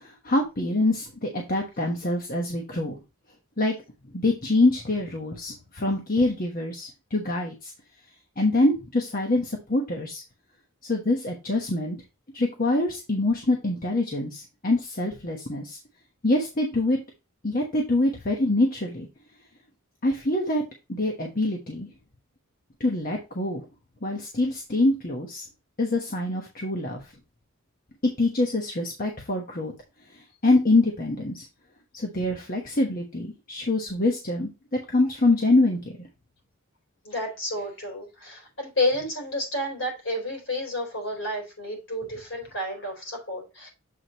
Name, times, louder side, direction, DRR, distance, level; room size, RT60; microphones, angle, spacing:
voice 1, 0.0-2.9 3.6-3.7 4.1-7.7 8.4-10.2 10.8-12.0 12.3-15.8 16.2-17.0 17.4-19.1 20.0-20.6 20.9-21.9 22.8-23.6 24.0-25.5 25.8-27.0 28.2-29.7 30.1-31.4 31.9-34.5 34.9-35.9, left 2 dB, 45° left, 1.2 m, -25 dB
voice 2, 37.0-43.7, left 1 dB, 60° left, 3.9 m, -30 dB
7.7 x 5.0 x 2.9 m
head